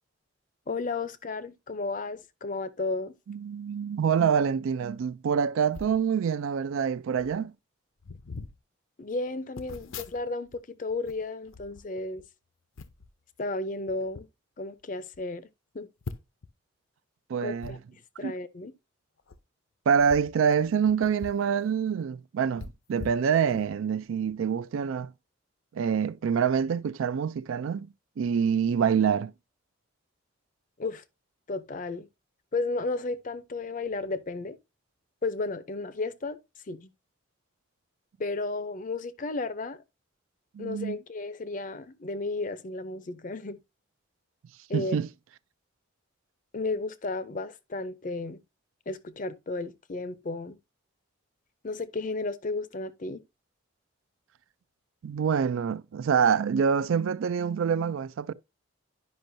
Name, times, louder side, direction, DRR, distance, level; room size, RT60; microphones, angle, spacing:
voice 1, 0.7-3.1 9.0-12.2 13.4-14.3 14.6-15.5 15.7-15.9 17.4-17.8 18.2-18.7 30.8-31.0 31.5-32.1 32.5-34.6 35.2-36.4 36.7-36.9 38.2-39.8 40.6-43.6 44.7-45.0 46.5-48.4 48.9-50.6 51.6-53.2, left 3 dB, 40° left, 0.5 m, -33 dB
voice 2, 3.3-7.5 17.3-17.8 18.2-18.3 19.9-25.1 25.7-27.9 28.2-29.3 40.5-41.0 44.7-45.1 55.0-58.3, right 7 dB, 75° right, 0.3 m, -26 dB
sound 1, 5.7-6.0 6.8-6.9 7.1-7.4 8.0-8.6 9.5-10.6 10.9-12.3 12.8-13.1 13.9-14.3 14.8-14.9 15.1-15.2 16.0-16.5 17.6-17.7 19.2-19.4 19.9-21.5 21.8-21.9 22.6-23.8 24.3-24.4, left 4 dB, 80° left, 0.6 m, -43 dB
10.5 x 5.3 x 2.6 m
head